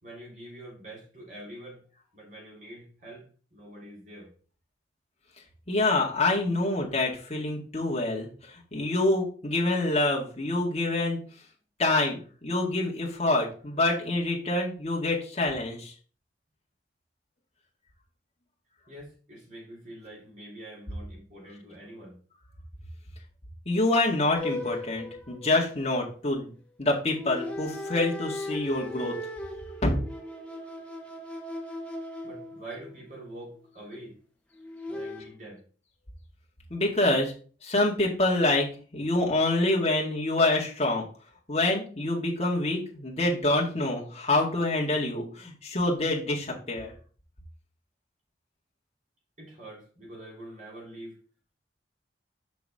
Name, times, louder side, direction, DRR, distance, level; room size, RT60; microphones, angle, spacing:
voice 1, 0.0-1.8 2.1-4.3 18.9-22.2 32.2-34.2 34.9-35.6 49.4-51.2, right 1 dB, 45° right, -3 dB, 3.4 m, -45 dB
voice 2, 5.7-11.2 11.8-15.9 23.7-26.5 26.8-29.2 29.8-30.0 36.7-37.3 37.6-41.1 41.5-46.9, left 2 dB, 35° left, -2 dB, 1.9 m, -26 dB
sound 1, 24.3-26.0 27.1-33.1 34.6-35.2, left 1 dB, 5° left, 1.0 m, -38 dB
6.2 x 6.0 x 3.6 m, 0.40 s
head